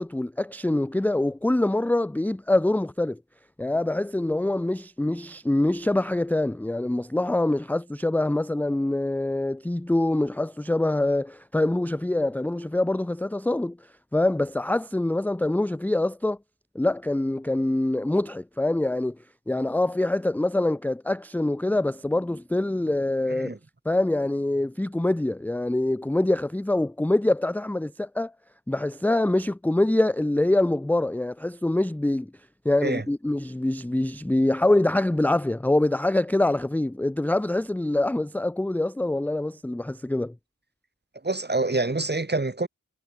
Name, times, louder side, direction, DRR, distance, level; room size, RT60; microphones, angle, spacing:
voice 1, 0.0-3.2 3.6-13.8 14.1-16.4 16.8-19.2 19.5-23.6 23.9-28.3 28.7-32.3 32.6-40.3, left 1 dB, 5° left, 0.4 m, -25 dB
voice 2, 41.2-42.7, right 2 dB, 30° right, 1.8 m, -26 dB
wide cardioid pair, 70°, 33 cm